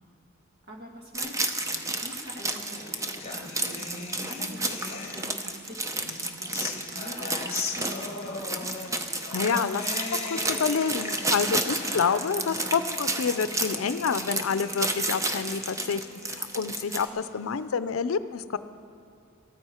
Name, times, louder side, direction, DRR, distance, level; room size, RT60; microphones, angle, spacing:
voice 1, 0.7-8.7, equal, 50° right, 0 dB, 1.8 m, -45 dB
sound 1, 1.1-17.1, right 2 dB, 15° right, 0.6 m, -31 dB
sound 2, 2.2-5.6 6.1-17.5, left 4 dB, 30° left, 1.2 m, -40 dB
voice 2, 9.3-9.9 10.3-18.6, left 6 dB, 85° left, 13 dB, 0.5 m, -28 dB
14.0 x 13.5 x 4.4 m, 2.7 s
head